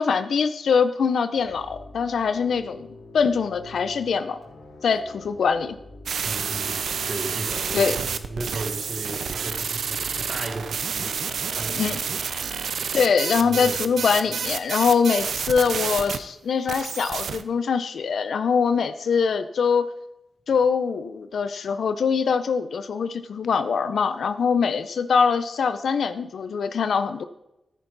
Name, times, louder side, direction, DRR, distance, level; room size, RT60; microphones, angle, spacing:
voice 1, 0.0-2.9 3.1-4.4 4.8-5.7 7.7-7.9 11.8-12.0 12.9-19.9 20.5-27.2, left 6 dB, 75° left, 0.7 m, -23 dB
sound 1, 1.3-11.3, left 2 dB, 60° left, 3.7 m, -45 dB
sound 2, 6.1-16.2 16.7-17.4, right 6 dB, 80° right, 0.7 m, -29 dB
voice 2, 6.2-12.2 12.8-13.1 13.4-14.3, right 2 dB, 25° right, 1.7 m, -36 dB
13.5 x 10.0 x 4.1 m
wide cardioid pair, 170°, 0 cm